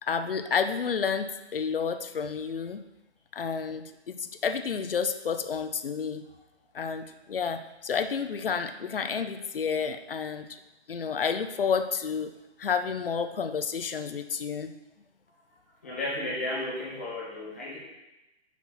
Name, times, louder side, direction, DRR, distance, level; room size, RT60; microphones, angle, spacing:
voice 1, 0.0-2.8 3.3-6.2 6.7-10.5 10.9-12.3 12.6-14.7, left 6 dB, 55° left, 9 dB, 0.5 m, -30 dB
voice 2, 15.8-17.8, left 1 dB, 10° left, -9 dB, 0.9 m, -33 dB
5.8 x 4.2 x 6.0 m, 0.97 s
hypercardioid pair, 180°, 34 cm